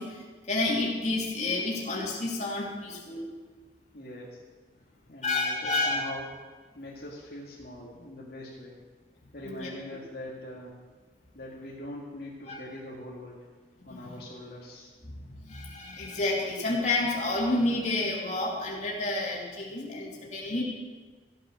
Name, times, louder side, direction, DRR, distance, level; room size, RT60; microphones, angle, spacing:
voice 1, 0.0-3.3 5.2-6.0 9.4-9.7 12.5-12.6 13.8-14.0 15.0-20.6, left 2 dB, 40° left, -3 dB, 2.8 m, -30 dB
voice 2, 3.9-4.4 5.1-6.3 6.7-8.8 9.3-10.8 11.3-13.5 13.8-14.9, left 1 dB, 60° left, -5 dB, 2.0 m, -42 dB
15.0 x 8.9 x 6.3 m, 1.4 s
head